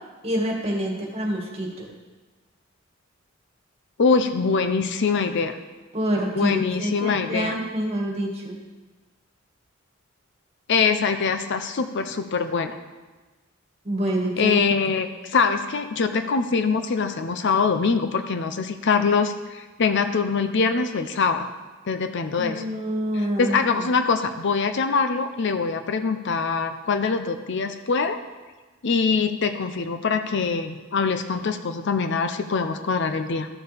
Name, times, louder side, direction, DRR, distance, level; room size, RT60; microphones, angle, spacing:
voice 1, 0.2-1.9 5.9-8.6 13.8-14.6 22.3-23.9, right 1 dB, 30° right, -1 dB, 1.8 m, -27 dB
voice 2, 4.0-5.6 6.4-7.5 10.7-12.8 14.4-21.5 21.9-22.6 23.4-28.2 28.8-33.5, left 5 dB, 60° left, 8 dB, 0.6 m, -23 dB
13.5 x 6.9 x 3.4 m, 1.3 s
head